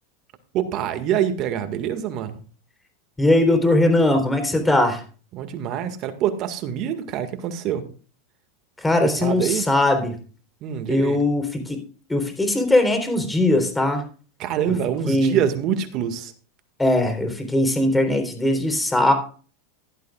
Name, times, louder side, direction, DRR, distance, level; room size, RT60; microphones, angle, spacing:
voice 1, 0.5-2.4 5.3-7.8 9.2-9.7 10.6-11.2 14.4-16.3, right 9 dB, 50° right, 9 dB, 1.8 m, -25 dB
voice 2, 3.2-5.0 8.8-10.2 10.9-11.8 12.1-14.0 14.7-14.8 15.1-15.4 16.8-19.1, left 1 dB, 10° left, 6 dB, 3.8 m, -20 dB
15.5 x 11.5 x 2.4 m, 0.39 s
hypercardioid pair, 110°, 0 cm